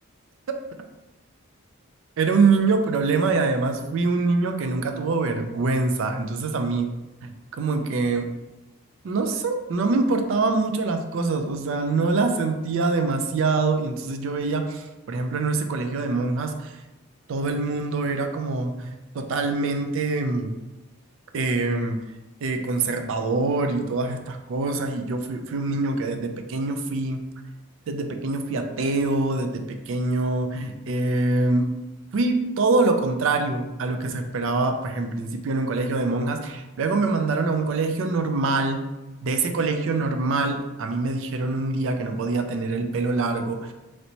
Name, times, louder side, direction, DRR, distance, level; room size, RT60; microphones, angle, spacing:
voice 1, 2.2-6.9 7.2-7.3 7.6-8.3 9.0-16.8 17.3-20.5 21.3-22.0 22.4-27.2 27.9-31.7 32.1-38.8 39.2-43.7, right 3 dB, 60° right, 6 dB, 0.4 m, -24 dB
3.1 x 2.7 x 2.9 m, 1.0 s
head